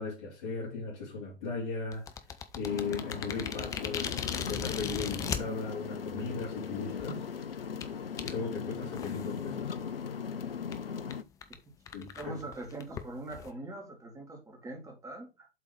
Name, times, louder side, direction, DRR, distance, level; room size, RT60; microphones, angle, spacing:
voice 1, 0.0-2.1 2.5-7.3 8.2-9.7 11.9-12.4, left 4 dB, 55° left, 2.9 m, -37 dB
sound 1, 1.9-5.4 6.2-6.3 6.9-7.1 7.8-7.9 8.2-8.3 8.9-9.4 9.7-9.8 10.2-10.3 10.7-10.8 11.1-11.2 11.4-11.6 11.9-13.5, left 8 dB, 10° left, 0.5 m, -37 dB
sound 2, 2.6-11.2, left 7 dB, 75° left, 0.7 m, -38 dB
voice 2, 12.2-15.5, right 2 dB, 10° right, 2.3 m, -42 dB
7.7 x 4.0 x 4.5 m
figure-of-eight pair, 105°, 29 cm